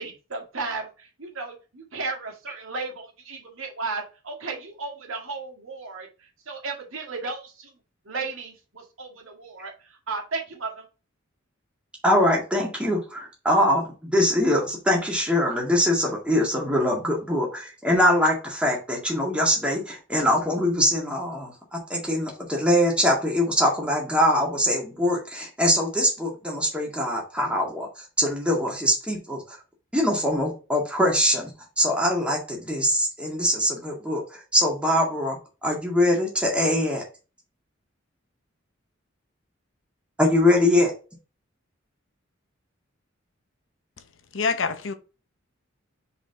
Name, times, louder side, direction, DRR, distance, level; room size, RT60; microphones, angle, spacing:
voice 1, 0.0-7.7 8.1-10.9, right 3 dB, 80° right, 2.0 m, -34 dB
voice 2, 12.0-27.9 28.2-29.6 29.9-31.5 31.8-37.0 40.2-40.9, left 1 dB, 5° right, 1.9 m, -23 dB
voice 3, 44.3-44.9, left 5 dB, 65° left, 0.7 m, -25 dB
5.0 x 4.2 x 4.5 m
head